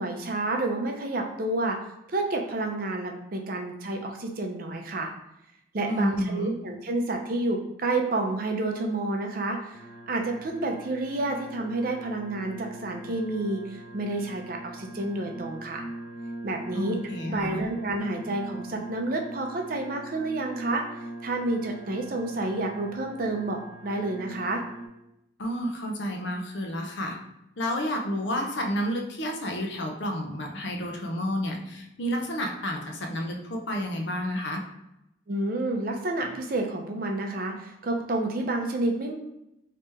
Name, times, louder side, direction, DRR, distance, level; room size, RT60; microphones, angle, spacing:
voice 1, 0.0-5.1 5.7-9.8 10.1-15.8 16.4-17.0 17.2-20.8 21.2-23.6 23.8-24.6 35.3-39.1, right 2 dB, 50° right, 3 dB, 0.5 m, -29 dB
voice 2, 5.9-6.5 16.7-17.6 25.4-27.2 27.6-34.6, equal, 70° left, 2 dB, 0.6 m, -30 dB
sound 1, 9.7-24.9, right 1 dB, 55° left, 1.0 m, -42 dB
3.2 x 2.9 x 3.3 m, 0.84 s
head